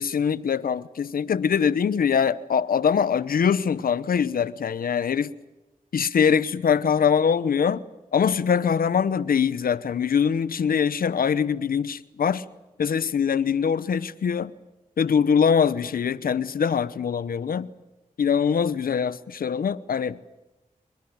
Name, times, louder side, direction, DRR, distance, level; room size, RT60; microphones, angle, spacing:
voice 1, 0.0-5.3 5.9-7.8 8.1-12.4 12.8-14.5 15.0-17.7 18.2-20.2, left 7 dB, 90° left, 0.9 m, -23 dB
27.5 x 21.0 x 8.9 m
cardioid pair, 45°, 15 cm